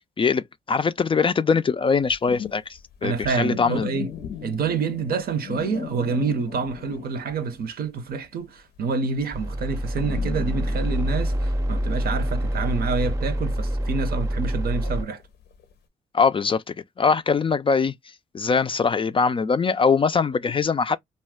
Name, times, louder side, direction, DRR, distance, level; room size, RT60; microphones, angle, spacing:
voice 1, 0.2-2.6 3.0-3.9 16.1-17.9 18.3-21.0, left 5 dB, 30° left, 0.3 m, -22 dB
sound 1, 2.0-7.6 7.9-15.7, left 7 dB, 80° left, 0.6 m, -38 dB
voice 2, 3.0-4.1 4.4-15.2, right 5 dB, 65° right, 0.6 m, -27 dB
sound 2, 9.3-15.0, right 1 dB, 15° right, 0.6 m, -26 dB
2.4 x 2.1 x 3.4 m
supercardioid pair, 50°, 17 cm